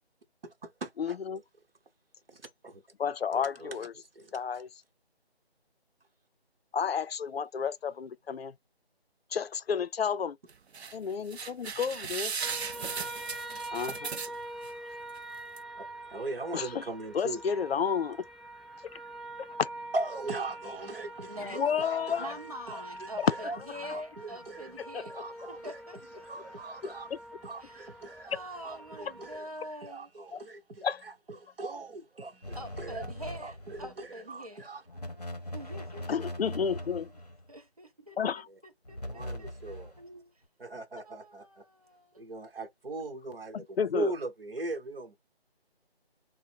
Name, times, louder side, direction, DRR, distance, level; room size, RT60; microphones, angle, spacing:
voice 1, 0.4-1.2 2.3-2.8 3.3-3.8 4.1-4.4 12.6-12.7 13.9-14.0 16.1-17.4 19.9-22.4 22.7-24.8 25.0-25.8 26.2-27.1 27.4-28.4 28.6-29.5 29.8-34.8 39.0-39.9 40.6-41.6 42.2-45.2, right 2 dB, 60° right, 1.0 m, -39 dB
voice 2, 1.0-1.4 3.0-3.9 4.3-4.7 6.7-8.5 9.3-10.4 10.9-12.3 13.7-13.9 16.5-16.9 17.1-18.2 18.9-19.0 19.6-19.7 21.5-22.3 23.2-23.3 24.9-25.1 26.8-27.2 30.3-30.4 30.8-31.0 36.1-37.1 38.2-38.5 43.5-44.1, left 7 dB, 65° left, 0.5 m, -31 dB
sound 1, 10.5-11.0 11.3-14.7 15.2-15.3 15.6-15.7, right 6 dB, 75° right, 0.6 m, -37 dB
sound 2, 12.4-29.4, right 1 dB, ahead, 0.3 m, -45 dB
voice 3, 21.3-21.6 22.2-26.5 27.6-27.9 28.3-30.1 32.5-34.7 35.5-37.0 37.5-40.3 41.0-42.2, equal, 35° right, 0.6 m, -45 dB
sound 3, 32.4-34.0 34.9-37.5 38.8-40.0, left 1 dB, 40° left, 0.7 m, -41 dB
3.6 x 2.1 x 4.2 m
figure-of-eight pair, 180°, 32 cm